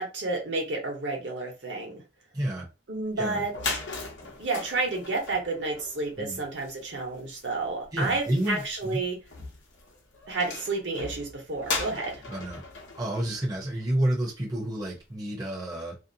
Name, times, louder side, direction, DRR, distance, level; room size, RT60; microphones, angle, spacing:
voice 1, 0.0-2.0 2.9-3.5 4.4-9.2 10.3-12.2, right 3 dB, 65° right, 1 dB, 1.0 m, -30 dB
voice 2, 2.3-2.7 3.2-3.4 6.2-6.4 7.9-9.0 12.3-12.6 13.0-16.0, right 1 dB, 20° right, -3 dB, 0.7 m, -30 dB
sound 1, 3.1-3.2 3.4-14.2, left 3 dB, 70° left, 0.8 m, -39 dB
2.6 x 2.1 x 2.6 m, 0.28 s
head